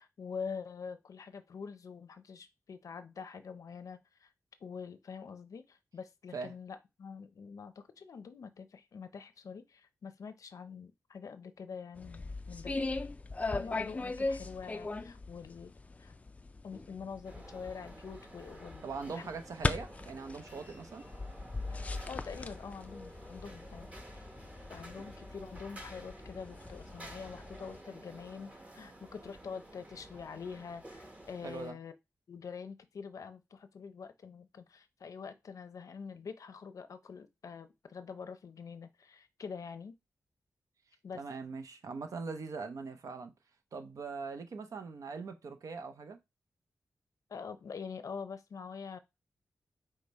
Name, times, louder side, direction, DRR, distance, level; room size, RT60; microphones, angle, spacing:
voice 1, 0.0-4.3 4.6-13.0 13.5-15.7 16.0-16.1 16.6-19.3 21.7-23.9 24.1-24.2 24.7-31.9 32.3-39.9 41.0-41.2 47.3-49.0, left 6 dB, 70° left, 0.6 m, -45 dB
sound 1, 12.0-27.8, left 3 dB, 25° left, 0.3 m, -40 dB
sound 2, 17.2-31.7, right 1 dB, 25° right, 1.0 m, -52 dB
voice 2, 18.8-21.1 31.4-31.8 41.1-43.3 43.7-46.2, right 4 dB, 70° right, 0.6 m, -41 dB
4.9 x 2.1 x 4.1 m
wide cardioid pair, 95°, 6 cm